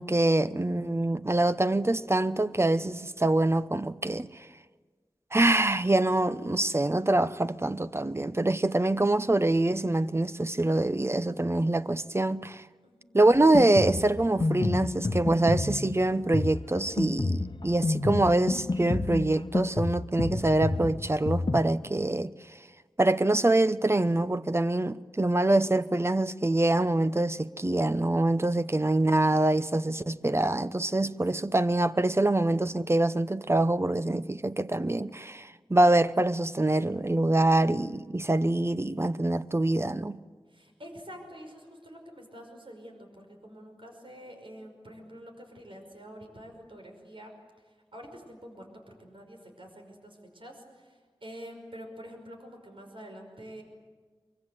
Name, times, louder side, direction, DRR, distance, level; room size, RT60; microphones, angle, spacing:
voice 1, 0.0-4.3 5.3-12.6 13.1-22.3 23.0-40.2, right 2 dB, 30° right, 0.8 m, -25 dB
voice 2, 12.8-13.3 40.5-47.3 47.6-53.6, equal, 70° right, 5.5 m, -47 dB
Drum kit, 13.3-21.6, left 2 dB, 55° left, 1.0 m, -30 dB
24.0 x 23.5 x 8.1 m
wide cardioid pair, 60°, 9 cm